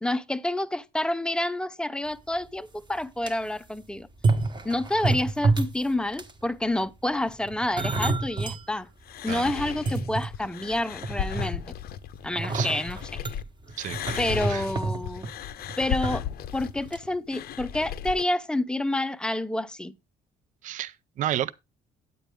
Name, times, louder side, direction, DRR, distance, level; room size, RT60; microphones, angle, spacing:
voice 1, 0.0-4.1 4.6-8.9 9.2-11.7 12.2-13.2 14.2-15.3 15.8-16.2 16.5-20.0, left 1 dB, 5° left, 0.5 m, -28 dB
sound 1, 2.4-2.5 2.9-3.3 4.1-5.8 6.1-6.5 7.3-8.6 9.1-9.2 9.7-10.7 11.0-11.8 12.3-16.1 16.4-16.6 16.9-17.0, right 3 dB, 25° right, 1.1 m, -28 dB
sound 2, 9.0-13.4 13.7-18.2, left 10 dB, 65° left, 0.6 m, -35 dB
voice 2, 13.8-14.2 14.5-14.6 20.6-21.5, right 12 dB, 50° right, 0.4 m, -31 dB
9.2 x 8.9 x 3.4 m
cardioid pair, 110°, 17 cm